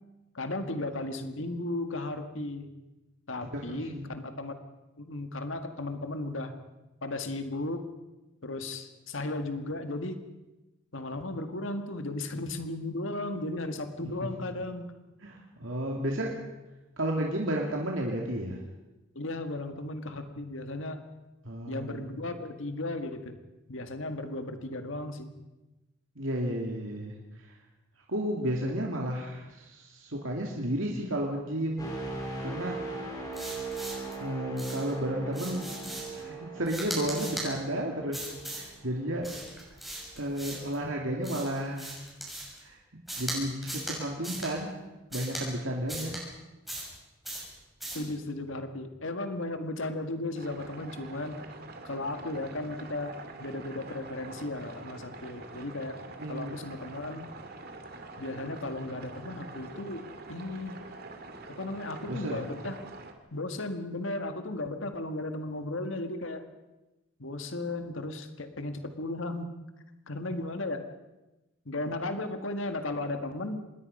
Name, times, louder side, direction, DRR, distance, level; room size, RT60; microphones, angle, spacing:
voice 1, 0.3-2.7 3.3-4.6 5.0-6.5 7.0-7.9 8.4-10.2 10.9-14.9 16.0-16.1 19.2-21.0 21.7-23.3 23.7-25.3 47.9-51.4 51.8-56.0 56.3-57.3 58.2-60.8 61.6-62.8 63.3-66.4 67.2-69.5 70.1-70.8 71.7-73.6, left 2 dB, 70° left, 7 dB, 1.8 m, -35 dB
voice 2, 3.7-4.2 14.2-14.3 15.2-16.3 17.0-18.6 21.4-22.0 26.2-27.2 27.4-27.5 28.1-31.9 32.4-32.8 34.2-39.3 40.2-42.0 42.6-42.8 43.2-44.7 45.1-46.2 56.2-56.5 62.1-62.4, right 1 dB, 70° right, -1 dB, 2.7 m, -32 dB
sound 1, 31.8-39.6 40.0-40.3, right 3 dB, 20° left, 4.4 m, -40 dB
sound 2, 33.3-34.1 34.6-34.9 35.3-36.2 36.6-37.5 38.1-38.7 39.2-40.7 41.2-42.6 43.1-43.4 43.6-44.0 44.2-44.5 45.1-45.4 45.9-46.2 46.7-47.0 47.2-47.5 47.8-48.1, right 1 dB, ahead, 7.0 m, -38 dB
sound 3, 50.4-63.1, right 3 dB, 45° right, 2.3 m, -45 dB
26.5 x 21.0 x 5.5 m, 1.0 s
head